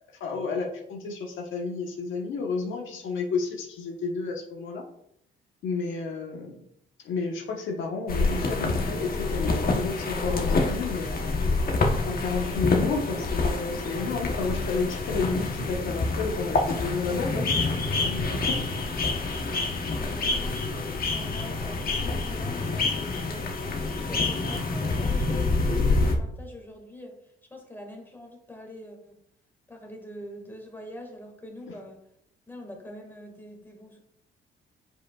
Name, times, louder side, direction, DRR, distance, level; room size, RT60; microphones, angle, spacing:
voice 1, 0.2-4.8 5.6-6.5 7.0-11.3 12.1-17.5 18.1-18.6, left 4 dB, 75° left, 0 dB, 1.2 m, -31 dB
sound 1, 8.1-26.2, left 3 dB, 50° left, 1.1 m, -27 dB
voice 2, 19.9-23.5 24.0-29.2 29.7-32.0 32.5-34.0, left 1 dB, 10° left, 1 dB, 1.9 m, -44 dB
8.1 x 5.0 x 2.4 m, 0.74 s
cardioid pair, 90°, 20 cm